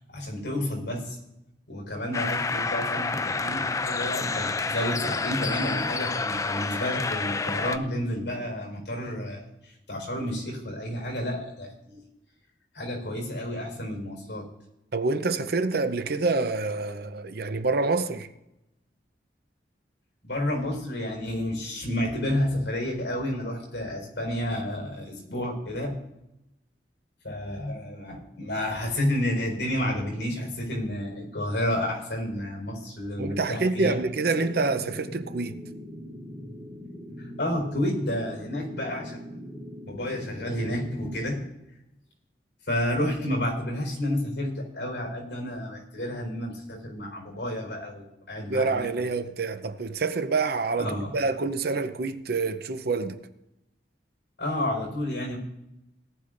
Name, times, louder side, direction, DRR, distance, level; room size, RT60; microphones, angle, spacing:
voice 1, 0.1-1.2 1.7-12.0 12.7-14.5 20.2-25.9 27.2-34.0 37.2-39.3 39.8-41.5 42.7-48.9 50.8-51.2 54.4-55.4, left 1 dB, 75° left, 4.6 m, -30 dB
sound 1, 2.1-7.8, left 4 dB, 20° left, 0.4 m, -29 dB
voice 2, 14.9-18.3 33.2-35.6 48.4-53.2, right 3 dB, 60° right, 0.7 m, -27 dB
sound 2, 33.7-41.3, left 1 dB, 10° right, 4.4 m, -41 dB
18.0 x 11.5 x 2.6 m
head